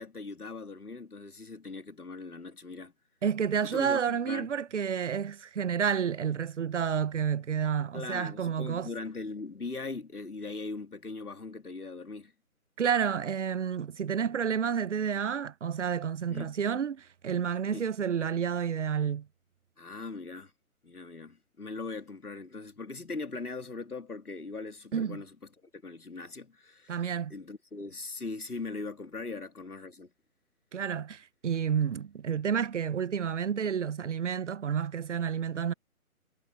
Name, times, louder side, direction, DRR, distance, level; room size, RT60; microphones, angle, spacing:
voice 1, 0.0-2.9 3.6-4.5 7.9-12.3 16.3-16.5 17.7-17.9 19.8-20.5 20.8-25.4 25.7-27.0 27.3-30.1, left 3 dB, 90° left, 2.4 m, -40 dB
voice 2, 3.2-8.9 12.8-19.3 24.9-25.2 26.9-27.3 30.7-35.7, right 7 dB, 55° right, 0.9 m, -30 dB
figure-of-eight pair, 140°, 43 cm